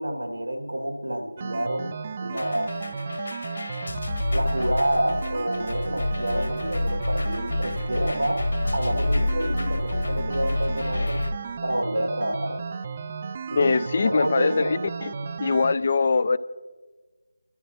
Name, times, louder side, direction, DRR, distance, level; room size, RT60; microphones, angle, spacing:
voice 1, 0.0-2.7 4.3-8.4 8.7-11.2 11.6-12.6 13.5-13.7 14.0-14.8, right 1 dB, 85° right, 3 dB, 2.2 m, -28 dB
sound 1, 1.4-15.8, right 5 dB, 30° right, 0.4 m, -34 dB
sound 2, 2.3-11.3, left 2 dB, 65° left, 1.9 m, -28 dB
voice 2, 13.6-15.1 15.4-16.4, left 4 dB, 40° left, 16 dB, 0.4 m, -22 dB
27.5 x 13.0 x 2.9 m, 1.3 s
figure-of-eight pair, 165°, 0 cm